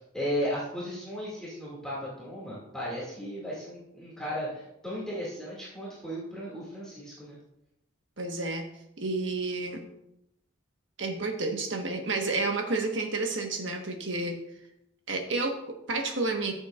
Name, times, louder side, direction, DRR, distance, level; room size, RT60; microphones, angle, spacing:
voice 1, 0.1-7.4, equal, 5° left, -7 dB, 2.4 m, -35 dB
voice 2, 8.2-8.6 9.0-9.8 11.0-14.4 15.1-16.5, right 3 dB, 75° right, 3 dB, 1.4 m, -30 dB
13.5 x 7.1 x 2.5 m, 0.83 s
head